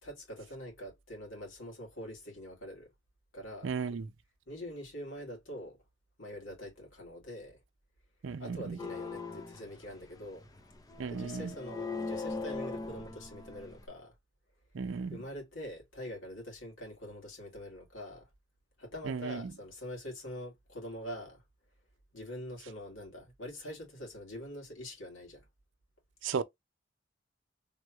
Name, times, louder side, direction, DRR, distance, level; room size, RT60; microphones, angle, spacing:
voice 1, 0.0-2.9 3.3-3.8 4.5-5.8 6.2-7.6 8.4-10.5 11.1-14.2 15.1-18.3 18.8-21.4 22.1-25.5, equal, 85° left, 2.0 m, -44 dB
voice 2, 3.6-4.1 8.2-8.8 11.0-11.5 14.7-15.2 19.1-19.4 26.2-26.4, right 5 dB, 75° right, 0.5 m, -35 dB
sound 1, 8.8-13.9, left 4 dB, 20° left, 0.5 m, -40 dB
3.5 x 2.3 x 2.9 m
head